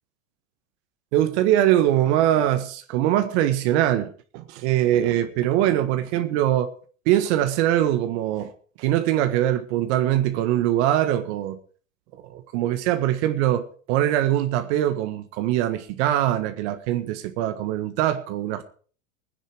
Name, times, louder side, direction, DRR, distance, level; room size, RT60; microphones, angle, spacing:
voice 1, 1.1-6.7 7.0-8.5 8.8-11.6 12.2-18.6, right 12 dB, 55° right, 1.6 m, -22 dB
20.5 x 10.0 x 4.6 m
hypercardioid pair, 120°, 40 cm